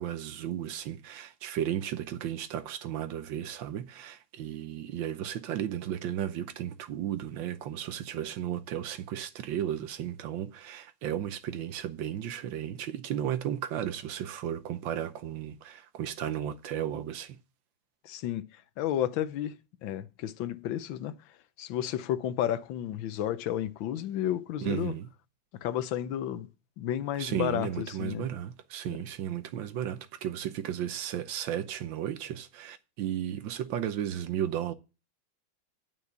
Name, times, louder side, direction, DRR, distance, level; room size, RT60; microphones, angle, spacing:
voice 1, 0.0-17.4 24.6-25.1 27.2-34.7, right 10 dB, 80° right, 1.5 m, -34 dB
voice 2, 18.0-18.4 18.8-21.1 21.6-24.9 25.6-26.5 26.8-28.3, left 11 dB, 80° left, 1.5 m, -32 dB
9.3 x 5.6 x 8.0 m
omnidirectional pair, 2.1 m